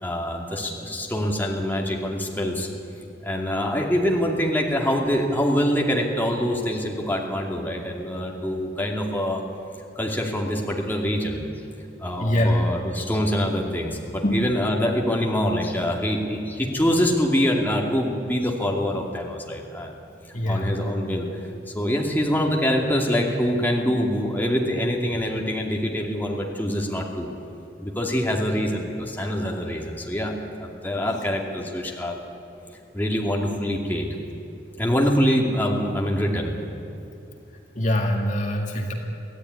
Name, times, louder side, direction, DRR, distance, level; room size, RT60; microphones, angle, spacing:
voice 1, 0.0-2.7 3.0-9.4 10.0-11.6 12.0-19.9 20.4-21.3 21.7-27.3 27.8-30.3 30.6-32.2 32.9-34.1 34.8-36.5, equal, 10° left, -1 dB, 2.6 m, -25 dB
voice 2, 12.2-12.6 14.2-14.4 20.3-20.7 37.8-38.9, left 1 dB, 40° left, 2 dB, 2.0 m, -23 dB
24.5 x 16.0 x 9.7 m, 2.8 s
head